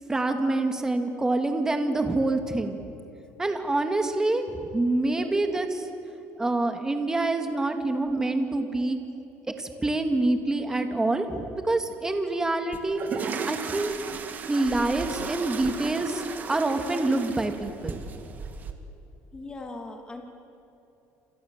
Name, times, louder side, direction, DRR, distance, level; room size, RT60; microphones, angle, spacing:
voice 1, 0.1-2.8 3.4-5.9 6.4-9.0 9.6-13.9 14.5-16.2 16.5-18.0, right 2 dB, 10° right, 5 dB, 2.1 m, -26 dB
voice 2, 5.1-5.4 19.3-20.2, left 2 dB, 15° left, 3 dB, 2.8 m, -40 dB
sound 1, 12.7-18.7, right 5 dB, 30° right, 1.9 m, -36 dB
28.5 x 27.0 x 7.5 m, 2.9 s
cardioid pair, 145°, 6 cm